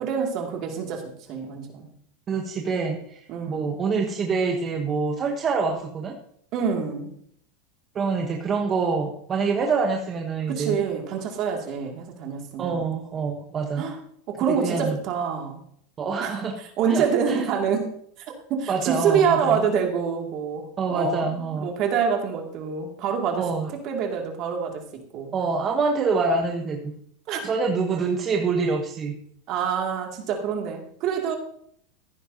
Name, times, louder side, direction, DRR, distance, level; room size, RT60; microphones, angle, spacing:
voice 1, 0.0-1.9 3.3-3.7 6.5-7.1 10.5-12.9 13.8-14.0 14.3-15.6 16.2-16.4 16.8-23.4 23.7-25.3 27.3-27.4 29.5-31.4, right 7 dB, 40° right, 2 dB, 2.5 m, -26 dB
voice 2, 2.3-6.1 7.9-10.8 12.6-13.8 14.5-15.0 16.0-16.5 16.9-17.4 18.7-19.6 20.8-21.7 23.4-23.7 25.3-27.0 27.4-29.2, right 4 dB, 25° right, 2 dB, 1.1 m, -26 dB
15.5 x 9.9 x 2.8 m, 0.67 s
supercardioid pair, 150°, 0 cm